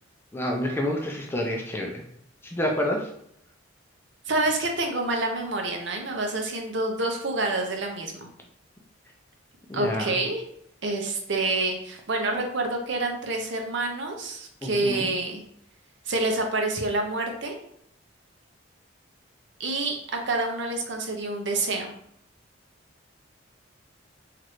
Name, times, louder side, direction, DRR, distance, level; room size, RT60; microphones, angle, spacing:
voice 1, 0.3-2.0 2.4-3.1 9.7-10.1 14.6-15.1, left 1 dB, 10° left, 0 dB, 0.3 m, -28 dB
voice 2, 4.3-8.3 9.7-10.4 10.8-15.4 16.1-17.5 19.6-21.9, right 2 dB, 60° right, 2 dB, 0.6 m, -27 dB
3.1 x 2.5 x 2.9 m, 0.72 s
head